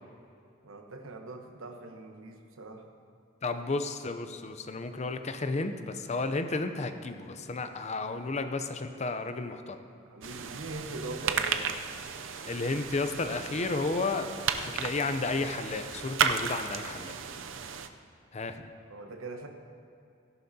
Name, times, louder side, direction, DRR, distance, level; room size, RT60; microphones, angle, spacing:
voice 1, 0.6-2.8 10.1-11.8 18.9-19.5, right 2 dB, 90° right, 4 dB, 1.1 m, -41 dB
voice 2, 3.4-9.8 12.4-14.3 14.6-17.1 18.3-18.6, left 3 dB, 35° left, 9 dB, 0.6 m, -32 dB
sound 1, 10.2-17.9, right 6 dB, 65° right, 0.6 m, -34 dB
17.0 x 11.0 x 2.8 m, 2.5 s
head